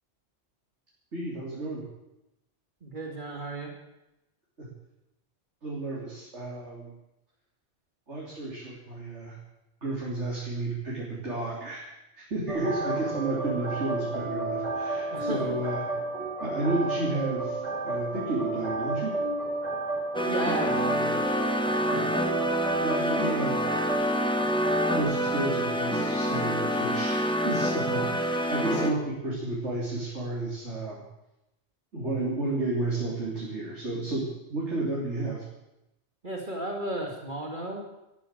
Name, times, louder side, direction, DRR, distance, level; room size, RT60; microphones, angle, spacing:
voice 1, 1.1-1.8 4.6-4.7 5.6-6.9 8.1-9.4 9.8-11.9 12.2-15.8 16.4-19.2 21.9-22.4 22.7-23.7 24.8-31.0 31.9-35.4, right 2 dB, 70° right, -6 dB, 4.0 m, -32 dB
voice 2, 2.8-3.7 12.8-13.3 15.1-15.6 20.2-21.2 28.7-29.1 36.2-37.9, right 1 dB, 40° right, 0 dB, 2.5 m, -34 dB
sound 1, 12.5-25.0, right 2 dB, 90° right, 6.0 m, -32 dB
sound 2, 20.1-28.9, equal, 5° left, 1.3 m, -27 dB
14.0 x 13.0 x 7.7 m, 0.91 s
omnidirectional pair, 1.2 m